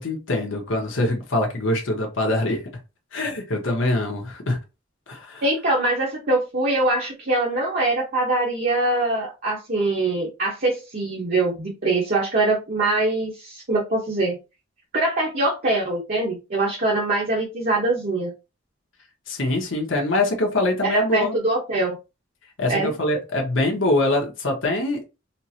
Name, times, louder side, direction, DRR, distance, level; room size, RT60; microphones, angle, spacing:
voice 1, 0.0-2.6 3.1-4.6 5.1-5.4 19.3-21.4 22.6-25.0, left 2 dB, 75° left, 1.0 m, -24 dB
voice 2, 5.4-14.4 14.9-18.3 20.8-22.0 22.7-22.9, right 2 dB, 50° right, 0.9 m, -23 dB
4.2 x 2.1 x 2.8 m
head